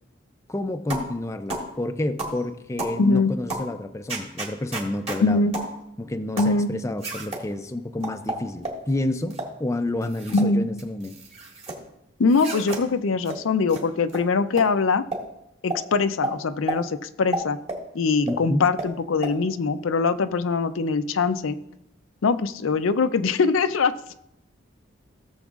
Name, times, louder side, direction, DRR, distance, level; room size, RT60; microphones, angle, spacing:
voice 1, 0.5-5.4 6.0-9.3 9.6-11.2 18.3-18.7, left 1 dB, 15° left, 8 dB, 0.4 m, -29 dB
sound 1, 0.9-1.1 1.5-1.7 2.2-2.4 2.8-3.0 3.5-3.7 4.1-5.2 5.5-5.7 6.4-6.6 7.0-7.4 8.0-8.8 9.3-9.5 10.0-10.5 10.8-11.8 12.3-12.8 13.3-13.4 13.7-13.8 14.1-14.2 14.6-14.7 15.1-15.2 15.7-15.8 16.2-16.4 16.7-16.8 17.3-17.8 18.3-18.4 18.8-18.9 19.2-19.3, right 2 dB, 30° right, 1.9 m, -31 dB
voice 2, 3.0-3.3 5.2-5.5 6.4-6.7 10.3-10.7 12.2-15.1 15.6-17.6 17.9-21.6 22.2-23.9, left 4 dB, 90° left, 10 dB, 0.5 m, -22 dB
17.0 x 7.1 x 2.4 m, 0.82 s
head